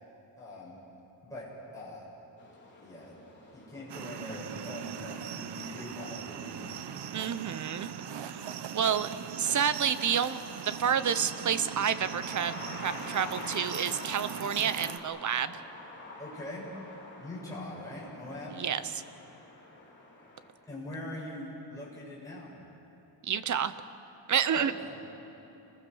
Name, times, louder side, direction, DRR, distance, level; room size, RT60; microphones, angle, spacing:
voice 1, 0.4-0.8 1.2-1.5 1.7-2.0 2.8-3.1 3.5-6.7 16.2-16.6 17.2-18.6 20.6-22.5 24.4-24.9, left 1 dB, 5° left, -7 dB, 7.2 m, -42 dB
sound 1, 2.4-20.5, left 2 dB, 25° left, 3.8 m, -48 dB
sound 2, 3.9-15.0, right 9 dB, 75° right, 1.0 m, -40 dB
voice 2, 7.1-7.9 8.7-9.1 9.4-12.5 12.8-15.6 18.5-18.8 23.2-23.7 24.3-24.7, right 8 dB, 45° right, 13 dB, 0.8 m, -29 dB
29.0 x 21.0 x 6.3 m, 2.9 s
wide cardioid pair, 180°, 43 cm